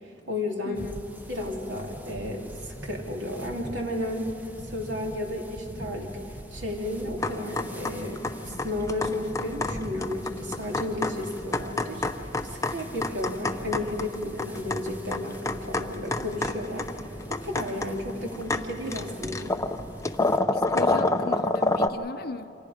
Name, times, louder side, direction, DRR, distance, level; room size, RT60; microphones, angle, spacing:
voice 1, 0.3-0.8 1.3-4.3 4.7-19.5, left 1 dB, 80° right, 3.0 m, -33 dB
sound 1, 0.7-20.4, equal, 10° right, 0.9 m, -43 dB
sound 2, 7.2-21.9, left 2 dB, 15° left, 0.6 m, -29 dB
voice 2, 20.5-22.5, left 3 dB, 55° left, 0.6 m, -36 dB
28.5 x 25.0 x 5.1 m
head